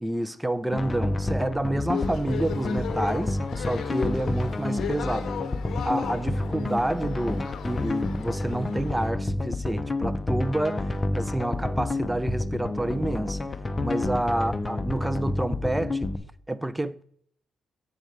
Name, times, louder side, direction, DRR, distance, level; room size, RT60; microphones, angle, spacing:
voice 1, 0.0-5.4 5.8-13.4 13.8-16.1 16.5-17.0, right 1 dB, 10° right, 0.4 m, -29 dB
sound 1, 0.7-16.2, left 2 dB, 25° left, 0.8 m, -29 dB
sound 2, 1.9-9.1, left 8 dB, 65° left, 0.8 m, -37 dB
8.3 x 4.5 x 5.8 m
cardioid pair, 90°, 0 cm